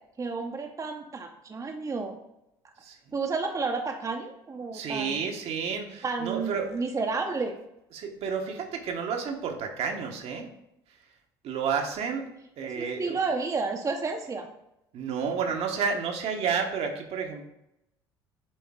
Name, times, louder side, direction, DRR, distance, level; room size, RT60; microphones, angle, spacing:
voice 1, 0.2-2.2 3.1-5.2 6.0-7.6 12.6-14.5, right 4 dB, 25° right, 3 dB, 0.8 m, -31 dB
voice 2, 4.7-6.7 7.9-10.5 11.4-12.3 12.6-13.2 14.9-17.4, right 6 dB, 55° right, 3 dB, 1.1 m, -31 dB
7.6 x 3.8 x 3.7 m, 0.84 s
hypercardioid pair, 65°, 12 cm